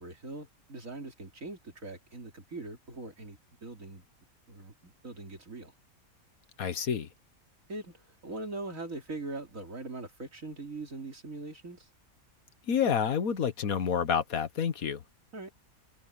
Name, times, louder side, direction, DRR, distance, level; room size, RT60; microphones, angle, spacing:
voice 1, 0.0-4.1 4.5-5.7 7.7-11.9 15.3-15.5, right 3 dB, 65° right, 3.5 m, -41 dB
voice 2, 6.6-7.1 12.7-15.0, left 7 dB, 75° left, 1.6 m, -28 dB
omnidirectional pair, 1.5 m